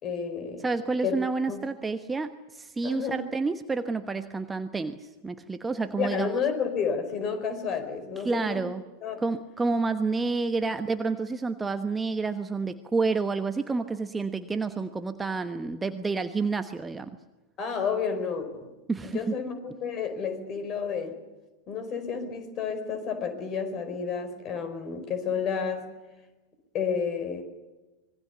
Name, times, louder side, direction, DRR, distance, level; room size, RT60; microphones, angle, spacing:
voice 1, 0.0-0.7 1.0-1.2 1.5-1.6 2.8-3.2 6.0-8.6 9.0-9.2 17.6-18.7 19.0-21.2 21.7-25.9 26.7-27.4, left 6 dB, 30° left, 10 dB, 4.7 m, -31 dB
voice 2, 0.6-6.3 8.2-8.8 9.2-17.2 18.9-19.4, right 4 dB, 10° right, 9 dB, 1.1 m, -29 dB
26.0 x 21.5 x 7.0 m, 1.1 s
figure-of-eight pair, 90°, 0 cm